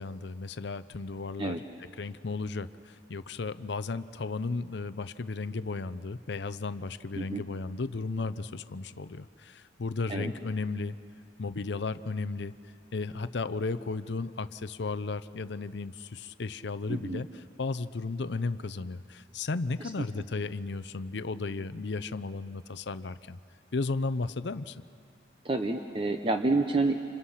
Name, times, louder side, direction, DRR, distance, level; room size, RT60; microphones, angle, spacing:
voice 1, 0.0-11.0 11.4-12.5 12.9-23.4 23.7-24.8, left 3 dB, 65° left, 13 dB, 0.6 m, -34 dB
voice 2, 16.9-17.2 25.4-27.0, right 3 dB, 30° right, 5 dB, 0.9 m, -28 dB
30.0 x 27.5 x 5.8 m, 2.5 s
head